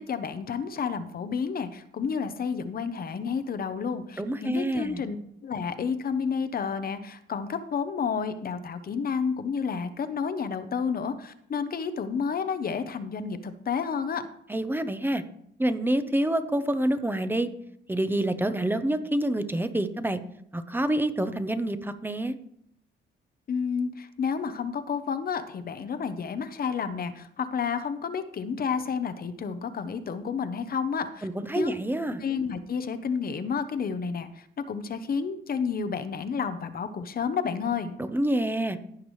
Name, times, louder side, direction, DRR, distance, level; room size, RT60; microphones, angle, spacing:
voice 1, 0.0-5.2 5.4-14.3 23.5-31.3 31.5-31.7 32.2-38.0, left 6 dB, 50° left, 11 dB, 0.9 m, -30 dB
voice 2, 4.2-5.0 14.5-15.2 15.6-17.5 17.9-20.2 20.5-22.4 31.2-32.2 38.0-38.8, right 1 dB, 10° right, 10 dB, 0.8 m, -27 dB
15.5 x 6.0 x 3.2 m, 0.71 s
cardioid pair, 90°, 20 cm